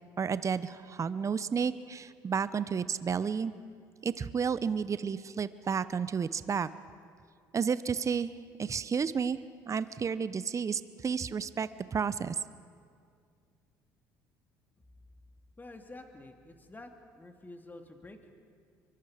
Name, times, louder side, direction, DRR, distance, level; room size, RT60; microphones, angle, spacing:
voice 1, 0.2-3.5 4.0-6.7 7.5-8.3 8.6-9.4 9.6-12.4, right 6 dB, 35° right, 15 dB, 0.8 m, -31 dB
voice 2, 15.6-16.9 17.1-18.3, left 2 dB, 20° left, 5 dB, 2.6 m, -49 dB
25.0 x 23.5 x 5.0 m, 2.2 s
hypercardioid pair, 65°, 10 cm